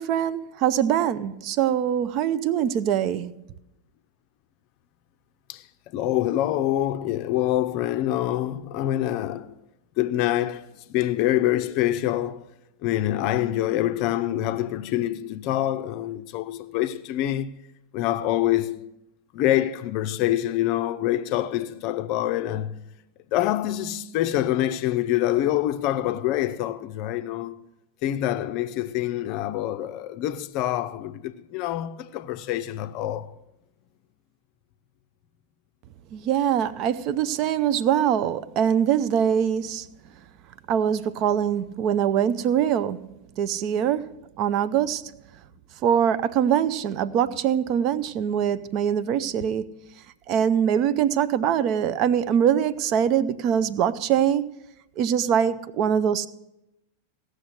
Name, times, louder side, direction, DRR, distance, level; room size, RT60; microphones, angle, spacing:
voice 1, 0.0-3.3 36.1-39.9 40.7-44.1 44.4-45.0 45.8-49.7 50.3-54.5 55.0-56.3, right 9 dB, 40° right, 0.4 m, -23 dB
voice 2, 5.9-9.5 10.0-12.4 12.8-17.6 17.9-18.9 19.3-22.8 23.3-27.6 28.0-33.3, left 13 dB, 40° left, 0.5 m, -26 dB
16.5 x 6.5 x 6.3 m
figure-of-eight pair, 90°, 0 cm